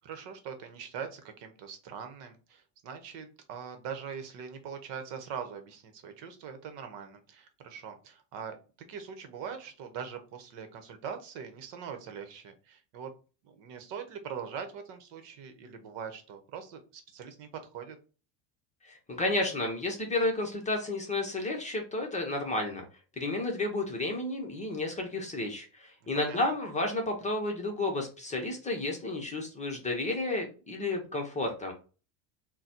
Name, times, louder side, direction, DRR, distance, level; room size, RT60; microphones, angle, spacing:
voice 1, 0.0-8.6 8.9-13.1 13.4-18.0 26.1-26.4, right 7 dB, 60° right, 7 dB, 1.0 m, -42 dB
voice 2, 18.8-22.8 23.2-31.7, left 2 dB, 15° left, 2 dB, 0.8 m, -32 dB
4.0 x 2.2 x 4.3 m, 0.35 s
supercardioid pair, 125°, 49 cm